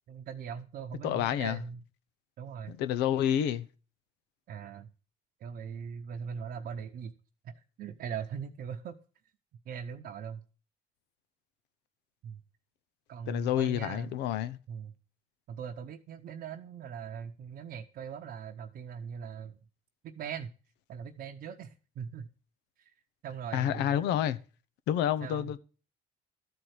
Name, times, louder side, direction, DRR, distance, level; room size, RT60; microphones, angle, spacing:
voice 1, 0.1-1.8 2.4-2.8 4.5-4.9 5.4-7.1 7.4-9.0 9.7-10.4 12.2-12.4 13.1-14.1 14.7-14.9 15.5-19.6 20.0-20.5 20.9-22.3 22.8-22.9 23.2-23.9 25.2-25.5, right 7 dB, 60° right, 0.9 m, -40 dB
voice 2, 1.0-1.6 2.7-3.7 13.3-14.6 23.5-24.4 24.9-25.6, left 10 dB, 85° left, 0.8 m, -29 dB
13.0 x 4.5 x 8.0 m
cardioid pair, 110°, 17 cm